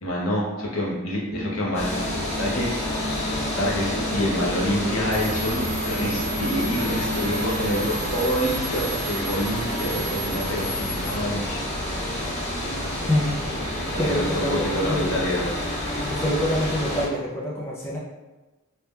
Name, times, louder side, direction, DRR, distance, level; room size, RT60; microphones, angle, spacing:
voice 1, 0.0-1.9 2.4-2.7 3.5-11.6 13.9-14.4 14.7-15.4, equal, 65° left, -4 dB, 0.8 m, -27 dB
sound 1, 1.3-7.7, left 2 dB, 50° right, 0.5 m, -33 dB
sound 2, 1.7-17.1, left 1 dB, 30° left, 0.9 m, -29 dB
sound 3, 5.1-11.1, right 4 dB, 85° right, 0.8 m, -35 dB
voice 2, 14.0-15.1 16.1-18.0, left 1 dB, 10° left, -6 dB, 0.4 m, -25 dB
2.8 x 2.2 x 3.4 m, 1.1 s
head